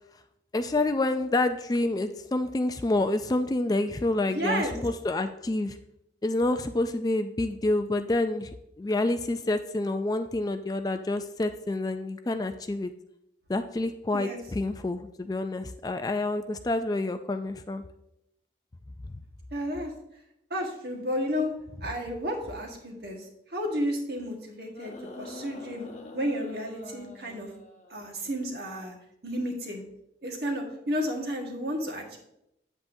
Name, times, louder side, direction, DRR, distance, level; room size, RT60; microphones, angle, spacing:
voice 1, 0.5-5.8 6.2-12.9 13.5-17.8, left 2 dB, 20° left, 9 dB, 0.3 m, -28 dB
voice 2, 4.3-4.8 14.1-14.4 19.5-19.9 20.5-21.5 21.8-25.9 26.1-27.5 27.9-29.0 29.2-29.8 30.2-32.2, equal, 60° right, 1 dB, 1.5 m, -32 dB
sound 1, 24.7-28.2 29.3-29.4, left 1 dB, 40° left, 0.8 m, -45 dB
8.3 x 7.8 x 2.7 m, 0.80 s
head